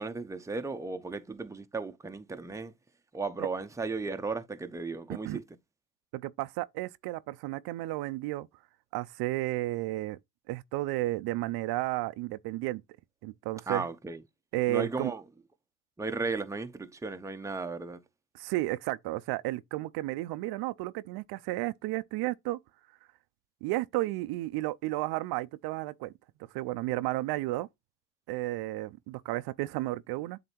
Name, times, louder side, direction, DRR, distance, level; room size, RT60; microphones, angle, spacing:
voice 1, 0.0-2.7 3.1-5.4 13.7-14.2 14.7-15.2 16.0-18.0, right 4 dB, 10° right, 0.7 m, -35 dB
voice 2, 6.1-8.5 8.9-10.2 10.5-12.8 13.2-13.8 14.5-15.1 18.3-22.6 23.6-26.1 26.5-27.7 28.3-30.4, right 18 dB, 65° right, 0.6 m, -32 dB
7.8 x 2.8 x 4.4 m
supercardioid pair, 90°, 41 cm